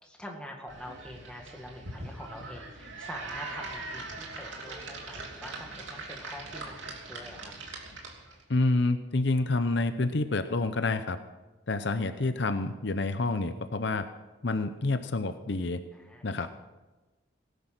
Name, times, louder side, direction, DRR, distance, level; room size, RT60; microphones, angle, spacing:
voice 1, 0.0-6.8 7.1-7.5 15.9-16.5, equal, 5° left, 1 dB, 2.0 m, -45 dB
sound 1, 0.7-8.4, right 2 dB, 75° right, 2.9 m, -41 dB
voice 2, 8.5-11.2 11.7-14.1 14.4-15.8 16.2-16.5, left 2 dB, 65° left, 10 dB, 0.7 m, -28 dB
18.0 x 10.0 x 6.1 m, 1.1 s
head